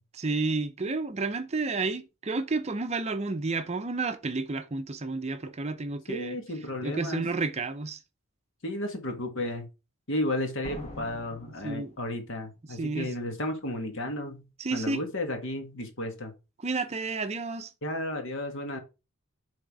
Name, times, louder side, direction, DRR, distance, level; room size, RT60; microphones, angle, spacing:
voice 1, 0.1-6.4 6.8-8.0 11.6-11.9 12.7-13.1 14.6-15.0 16.6-17.7, right 3 dB, 30° right, 0.6 m, -31 dB
voice 2, 6.1-7.2 8.6-9.7 10.1-14.5 14.7-16.3 17.8-18.8, left 1 dB, 60° left, 1.7 m, -33 dB
sound 1, 10.6-12.5, left 2 dB, 30° left, 1.2 m, -43 dB
7.7 x 3.6 x 4.7 m
head